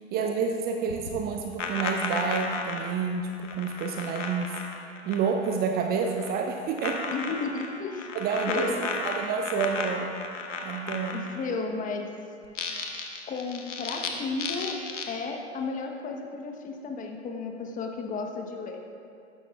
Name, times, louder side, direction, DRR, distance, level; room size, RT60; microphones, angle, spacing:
voice 1, 0.1-4.6 5.1-7.1 8.1-8.7 9.0-10.1 10.6-11.3, right 5 dB, 25° right, 3 dB, 0.7 m, -29 dB
sound 1, 0.9-5.6 5.8-6.4 6.8-11.5 12.4-14.1 14.4-15.1, left 4 dB, 75° left, 1.4 m, -34 dB
voice 2, 7.1-8.1 8.5-8.9 11.1-12.1 13.3-14.8 15.1-18.8, left 4 dB, 20° left, 3 dB, 1.1 m, -33 dB
14.5 x 12.5 x 2.4 m, 2.4 s
figure-of-eight pair, 95°, 37 cm